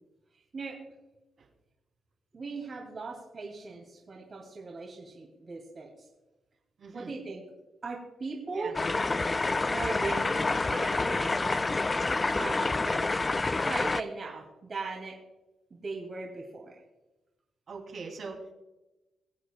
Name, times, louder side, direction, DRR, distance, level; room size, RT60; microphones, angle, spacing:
voice 1, 2.3-6.1 6.9-7.4 7.8-8.7 9.7-11.4 12.3-12.9 13.6-15.2 15.7-16.8, right 3 dB, 40° right, -1 dB, 2.2 m, -39 dB
voice 2, 6.8-7.1 8.5-8.7 17.7-18.5, right 4 dB, 60° right, 0 dB, 2.7 m, -42 dB
sound 1, 8.7-14.0, left 3 dB, 25° left, 0.3 m, -28 dB
22.5 x 8.0 x 2.3 m, 1.0 s
cardioid pair, 115°, 0 cm